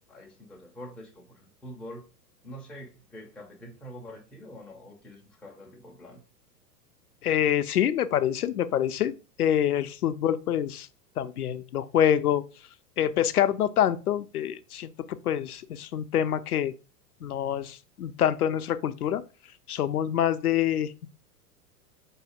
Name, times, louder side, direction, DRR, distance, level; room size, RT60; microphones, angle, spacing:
voice 1, 0.1-2.1 2.4-6.2, equal, ahead, 0.5 m, -45 dB
voice 2, 7.2-9.1 9.4-10.9 11.2-12.4 13.0-14.9 15.3-16.7 17.2-19.2 19.7-21.1, left 10 dB, 70° left, 0.5 m, -26 dB
4.0 x 2.7 x 4.8 m
figure-of-eight pair, 95°, 47 cm